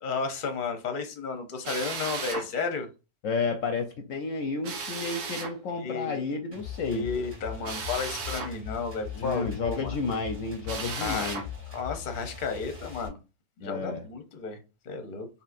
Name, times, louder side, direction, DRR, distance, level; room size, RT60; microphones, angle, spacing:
voice 1, 0.0-2.9 5.7-6.2 6.8-10.0 10.9-11.3 11.7-13.2 13.6-14.6 14.8-15.3, left 5 dB, 40° left, 0.8 m, -33 dB
Drill, 1.6-2.5 4.6-5.5 7.6-8.5 10.6-11.5, right 4 dB, 90° right, 1.4 m, -35 dB
voice 2, 3.2-7.1 9.1-11.4 13.6-14.1, left 4 dB, 65° left, 0.9 m, -31 dB
sound 1, 6.5-13.1, left 8 dB, 20° right, 1.9 m, -40 dB
4.3 x 3.5 x 2.5 m
omnidirectional pair, 1.6 m